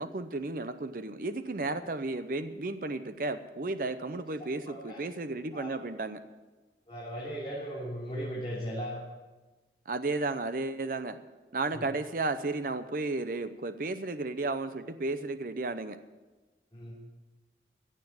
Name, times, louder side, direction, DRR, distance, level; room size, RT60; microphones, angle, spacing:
voice 1, 0.0-6.2 9.9-11.2 11.5-16.0, right 2 dB, 50° right, 10 dB, 0.7 m, -33 dB
voice 2, 4.1-5.0 5.5-5.7 6.9-9.0 11.7-11.9 16.7-17.0, equal, 25° left, -8 dB, 3.5 m, -38 dB
15.5 x 7.6 x 8.9 m, 1.2 s
head